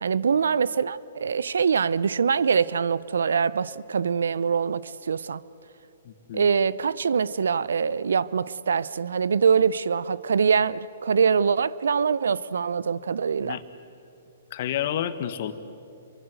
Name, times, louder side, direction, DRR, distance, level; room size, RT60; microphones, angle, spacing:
voice 1, 0.0-5.4 6.3-13.6, right 6 dB, 75° right, 0.7 m, -24 dB
voice 2, 6.1-6.5 13.4-13.6 14.5-15.5, left 10 dB, 50° left, 1.7 m, -30 dB
29.0 x 23.5 x 7.9 m
hypercardioid pair, 130°, 0 cm